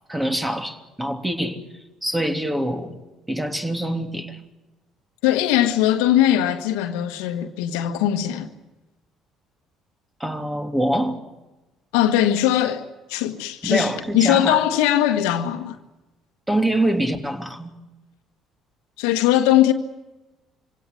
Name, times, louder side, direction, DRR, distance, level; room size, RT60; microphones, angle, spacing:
voice 1, 0.1-1.6 2.0-3.0 3.3-4.4 10.2-11.2 13.6-14.6 16.5-17.7, right 1 dB, 10° right, 3.2 m, -24 dB
voice 2, 5.2-8.5 11.9-15.8 19.0-19.7, left 12 dB, 80° left, 1.5 m, -20 dB
25.0 x 17.5 x 9.4 m
hypercardioid pair, 65°, 0 cm